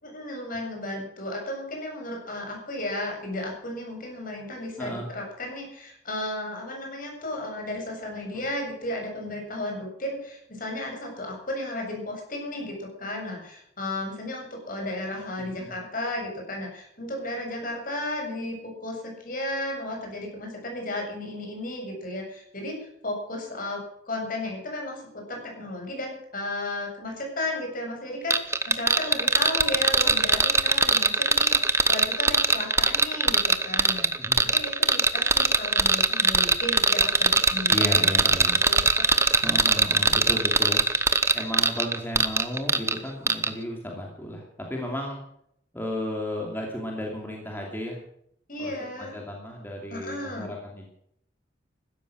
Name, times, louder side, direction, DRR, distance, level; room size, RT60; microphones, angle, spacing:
voice 1, 0.0-22.7 23.0-34.1 34.5-39.3 48.5-49.1 49.9-50.5, left 1 dB, 50° left, 1 dB, 7.6 m, -34 dB
voice 2, 4.8-5.1 8.3-8.4 15.6-15.7 34.2-34.4 37.7-38.6 39.4-40.8 41.3-45.2 45.7-48.0 48.6-48.7 49.0-50.9, left 1 dB, 10° left, 0 dB, 2.8 m, -33 dB
sound 1, 28.3-43.0 43.3-43.5, right 3 dB, 15° right, 1.1 m, -21 dB
15.5 x 13.0 x 6.4 m, 0.71 s
head